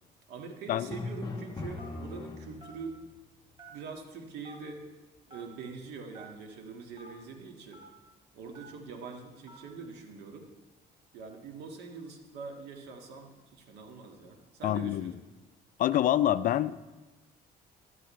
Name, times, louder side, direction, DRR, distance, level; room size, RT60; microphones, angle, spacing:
voice 1, 0.3-3.0 3.7-4.9 5.3-7.8 8.3-10.5 11.1-15.1, right 4 dB, 80° right, 3 dB, 1.7 m, -44 dB
Drum, 0.9-2.9, left 2 dB, 25° left, 1.3 m, -39 dB
Telephone, 1.8-2.1 2.6-2.8 3.6-4.0 4.4-4.6 5.3-5.5 6.1-6.3 6.9-7.1 7.7-7.8 8.5-8.8 9.5-9.7, right 2 dB, 30° right, 3.4 m, -50 dB
voice 2, 14.6-15.1 15.8-16.9, left 12 dB, 55° left, 15 dB, 0.4 m, -26 dB
14.0 x 12.0 x 3.2 m, 1.2 s
cardioid pair, 110°, 17 cm